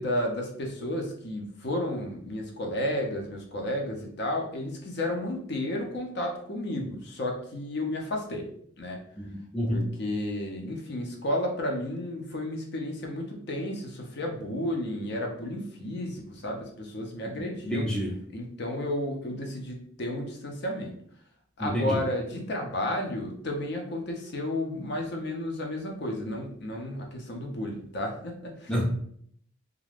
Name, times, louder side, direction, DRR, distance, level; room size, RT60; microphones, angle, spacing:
voice 1, 0.0-8.5 8.8-9.0 9.7-17.9 18.3-20.9 21.6-28.7, left 1 dB, 55° left, 1 dB, 0.5 m, -32 dB
voice 2, 9.2-9.9 17.7-18.1 21.6-22.0 28.7-28.8, equal, 5° left, -3 dB, 0.4 m, -28 dB
2.4 x 2.1 x 3.2 m, 0.65 s
head